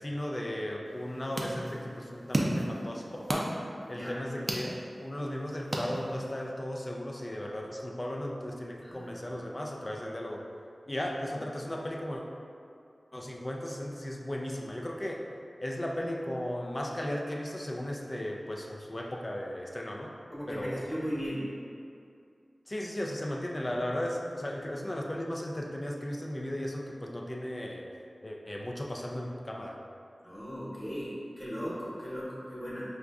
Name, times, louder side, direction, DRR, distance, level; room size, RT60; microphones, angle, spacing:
voice 1, 0.0-3.5 3.9-10.4 10.9-12.2 13.1-15.2 15.6-20.1 20.5-20.9 22.7-27.8 28.2-29.8, left 1 dB, 30° left, 0 dB, 0.4 m, -36 dB
sound 1, 0.9-6.5, right 1 dB, 45° right, 0.4 m, -36 dB
voice 2, 3.8-4.2 8.8-9.5 20.3-21.4 30.2-32.8, equal, 5° left, -9 dB, 1.1 m, -37 dB
5.0 x 2.4 x 2.3 m, 2.4 s
wide cardioid pair, 75°, 0 cm